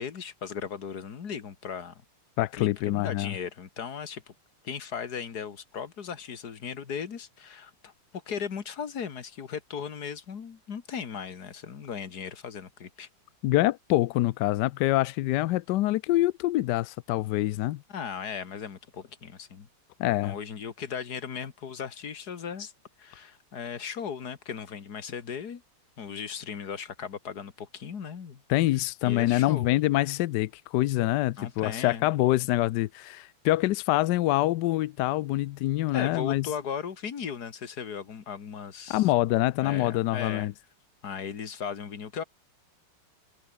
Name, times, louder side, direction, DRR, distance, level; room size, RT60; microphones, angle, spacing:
voice 1, 0.0-2.0 2.5-4.3 4.6-7.9 8.3-13.1 17.9-19.7 20.2-22.7 23.0-25.6 26.0-28.4 29.0-29.7 31.4-32.1 35.9-39.1 39.6-40.5 41.0-42.2, left 7 dB, 50° left, 2.1 m, -37 dB
voice 2, 2.4-3.3 13.4-17.8 20.0-20.4 28.5-36.5 38.9-40.5, left 16 dB, 80° left, 1.0 m, -25 dB
omnidirectional pair, 2.4 m